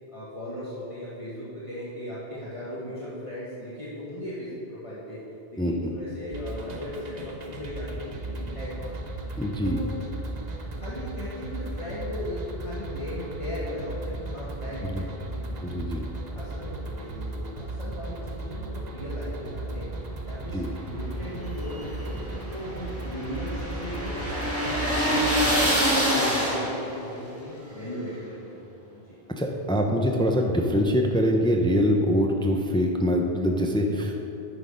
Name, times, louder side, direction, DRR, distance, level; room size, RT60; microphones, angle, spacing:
voice 1, 0.1-5.2 5.5-9.0 9.6-9.9 10.8-15.6 16.3-25.6 26.0-28.6 28.9-29.2, left 1 dB, 30° left, -9 dB, 1.4 m, -37 dB
sound 1, 6.3-25.7, right 2 dB, 45° right, 0.9 m, -36 dB
voice 2, 9.4-9.8 15.6-16.0 20.5-20.7 29.4-34.1, equal, 5° left, 2 dB, 0.5 m, -24 dB
sound 2, 21.5-27.0, equal, 15° right, 1.7 m, -26 dB
9.5 x 6.3 x 5.1 m, 3.0 s
omnidirectional pair, 1.0 m